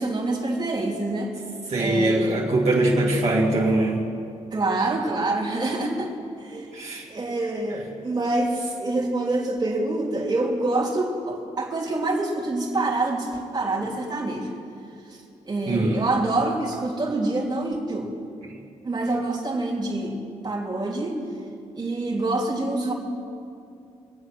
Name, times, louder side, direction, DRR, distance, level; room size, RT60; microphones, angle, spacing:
voice 1, 0.0-1.3 1.8-2.4 4.5-6.1 6.4-6.7 7.1-14.5 15.1-15.2 15.5-18.1 18.8-21.2 21.7-22.9, right 2 dB, 35° right, -2 dB, 3.0 m, -26 dB
voice 2, 1.7-4.0 6.7-7.1 15.7-16.0, right 2 dB, 60° right, -4 dB, 2.5 m, -22 dB
23.5 x 8.1 x 6.1 m, 2.5 s
cardioid pair, 80°, 13 cm